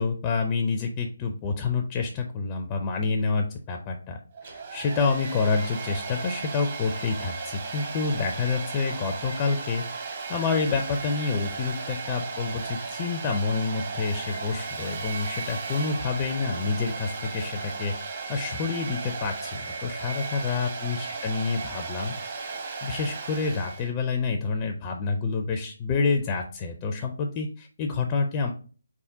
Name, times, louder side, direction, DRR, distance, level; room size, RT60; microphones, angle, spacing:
voice 1, 0.0-9.8 10.3-22.1 22.4-28.5, left 4 dB, 25° left, 4 dB, 0.4 m, -28 dB
Domestic sounds home sounds, 4.3-23.9, right 4 dB, 45° right, 0.9 m, -35 dB
4.0 x 3.6 x 2.6 m, 0.39 s
figure-of-eight pair, 150°, 0 cm